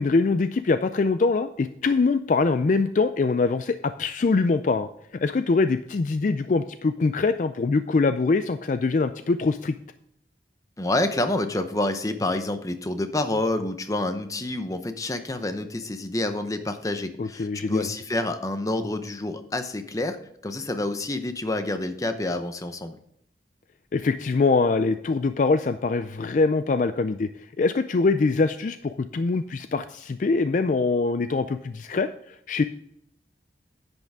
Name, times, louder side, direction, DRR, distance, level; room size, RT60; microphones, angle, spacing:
voice 1, 0.0-4.9 5.2-9.8 17.2-17.9 23.9-32.6, left 3 dB, 45° left, 11 dB, 0.3 m, -23 dB
voice 2, 10.8-20.2 20.4-23.0, left 2 dB, 20° left, 9 dB, 0.7 m, -28 dB
10.5 x 8.0 x 3.5 m, 0.77 s
head